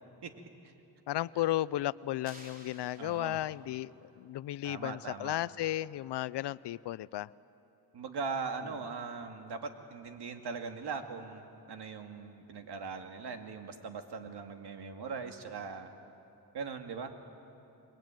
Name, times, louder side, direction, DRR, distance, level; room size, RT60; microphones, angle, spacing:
voice 1, 1.1-7.3 14.2-14.3, left 14 dB, 70° left, 20 dB, 0.6 m, -34 dB
sound 1, 2.3-3.8, right 1 dB, 20° right, 3.9 m, -54 dB
voice 2, 3.0-3.4 4.6-5.4 7.9-15.9 16.5-17.2, right 5 dB, 65° right, 6 dB, 2.4 m, -40 dB
28.5 x 22.5 x 9.2 m, 2.8 s
cardioid pair, 90°, 42 cm